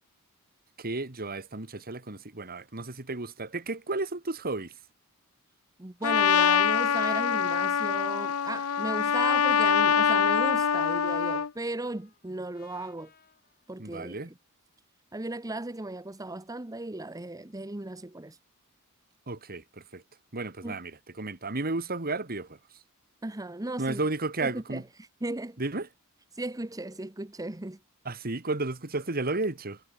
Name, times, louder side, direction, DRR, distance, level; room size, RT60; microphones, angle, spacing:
voice 1, 0.8-4.8 13.8-14.3 19.3-20.0 20.3-22.6 23.8-24.8 25.6-25.9 28.1-29.8, right 2 dB, 45° right, 2.2 m, -33 dB
voice 2, 5.8-13.1 13.7-14.3 15.1-18.4 20.6-20.8 23.2-24.0 24.4-25.6 26.3-27.8, right 2 dB, 15° right, 0.9 m, -36 dB
Trumpet, 6.0-11.5, left 7 dB, 80° left, 0.7 m, -24 dB
Trumpet 2, 8.1-14.3, left 7 dB, 45° left, 6.2 m, -61 dB
head